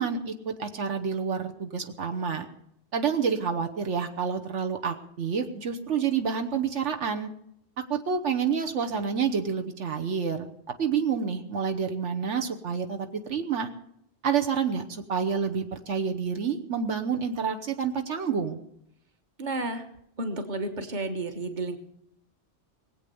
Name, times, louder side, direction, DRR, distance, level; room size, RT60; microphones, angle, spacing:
voice 1, 0.0-2.4 2.9-7.3 7.9-10.5 10.8-13.7 14.2-18.6, right 6 dB, 80° right, 5 dB, 1.4 m, -28 dB
voice 2, 19.4-19.8 20.2-21.8, right 2 dB, 40° right, 6 dB, 1.5 m, -31 dB
20.0 x 8.2 x 6.9 m, 0.74 s
omnidirectional pair, 1.2 m